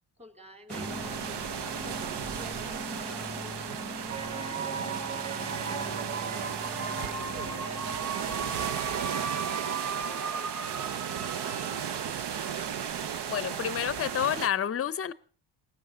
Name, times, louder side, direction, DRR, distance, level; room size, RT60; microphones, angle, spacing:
voice 1, 0.2-1.4 1.8-12.6, equal, 15° right, 2.7 m, -51 dB
sound 1, 0.7-8.9, left 2 dB, ahead, 1.0 m, -42 dB
sound 2, 0.7-14.5, right 8 dB, 60° right, 1.0 m, -35 dB
sound 3, 4.1-12.2, right 5 dB, 35° right, 1.3 m, -37 dB
voice 2, 13.3-15.1, left 9 dB, 30° left, 0.7 m, -29 dB
20.5 x 18.0 x 3.8 m
cardioid pair, 110°, 45 cm